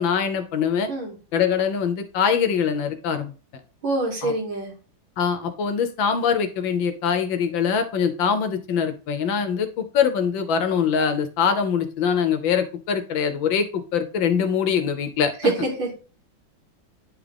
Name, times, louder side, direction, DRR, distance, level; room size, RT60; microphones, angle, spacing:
voice 1, 0.0-0.9 1.3-3.3 4.2-4.3 5.2-15.5, left 7 dB, 70° left, 8 dB, 1.5 m, -23 dB
voice 2, 3.8-4.7 15.4-15.9, right 2 dB, 70° right, 0 dB, 2.7 m, -25 dB
9.7 x 3.7 x 3.4 m, 0.35 s
omnidirectional pair, 2.3 m